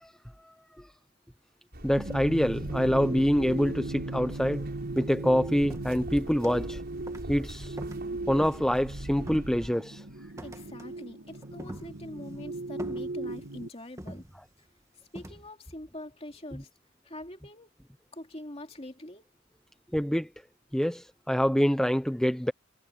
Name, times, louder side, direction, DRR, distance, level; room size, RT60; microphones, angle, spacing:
voice 1, 0.4-0.9 1.8-4.6 5.0-6.8 7.3-7.8 8.3-10.0 19.9-20.3 20.7-22.5, equal, 5° left, 0.7 m, -26 dB
sound 1, 1.7-9.7, equal, 50° right, 7.8 m, -42 dB
sound 2, 2.0-13.7, right 2 dB, 70° right, 2.3 m, -38 dB
sound 3, 4.3-4.5 5.0-5.4 5.7-6.8 7.1-7.4 7.8-8.8 9.2-9.9 10.4-11.0 11.3-12.3 12.8-13.5 14.0-14.7 15.1-15.5, right 1 dB, 15° right, 1.9 m, -44 dB
voice 2, 10.4-14.2 15.1-16.7 17.0-17.7 18.1-19.2, left 1 dB, 30° left, 2.7 m, -44 dB
head